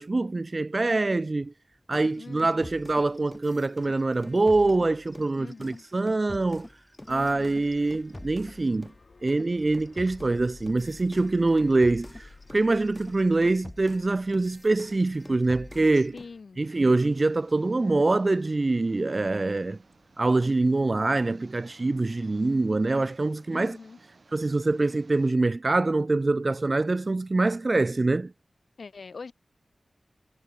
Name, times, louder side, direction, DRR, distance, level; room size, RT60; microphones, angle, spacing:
voice 1, 0.0-1.5 1.9-6.7 7.1-8.9 9.2-16.1 16.6-19.8 20.2-23.8 24.3-28.3, right 2 dB, 40° right, 0.5 m, -24 dB
sound 1, 1.9-9.0 9.3-16.4, left 1 dB, 20° left, 5.6 m, -46 dB
voice 2, 2.2-2.7 5.3-5.9 7.1-7.7 15.9-16.7 23.5-24.0 28.8-29.3, left 4 dB, 75° left, 1.3 m, -44 dB
sound 2, 7.0-22.9, left 3 dB, 60° left, 3.5 m, -55 dB
Engine, 16.6-25.3, right 3 dB, 55° right, 6.6 m, -58 dB
wide cardioid pair, 80°, 0 cm